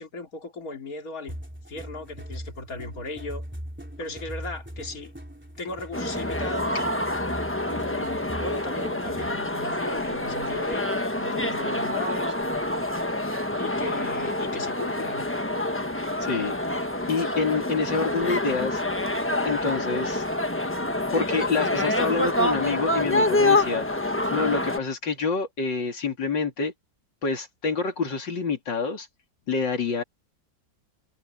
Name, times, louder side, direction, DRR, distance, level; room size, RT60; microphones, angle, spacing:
voice 1, 0.0-1.4 1.7-3.5 4.0-5.1 5.6-6.8 7.6-10.9 11.2-12.3 13.5-15.2 24.3-24.4, left 2 dB, 50° left, 3.5 m, -37 dB
sound 1, 1.3-9.5, equal, 5° right, 3.5 m, -40 dB
sound 2, 5.9-24.8, left 1 dB, 10° left, 0.9 m, -27 dB
voice 2, 16.2-16.5 17.1-18.8 19.4-20.2 21.1-23.8 24.3-26.7 27.2-29.1 29.5-30.0, left 5 dB, 85° left, 3.4 m, -27 dB
omnidirectional pair, 1.9 m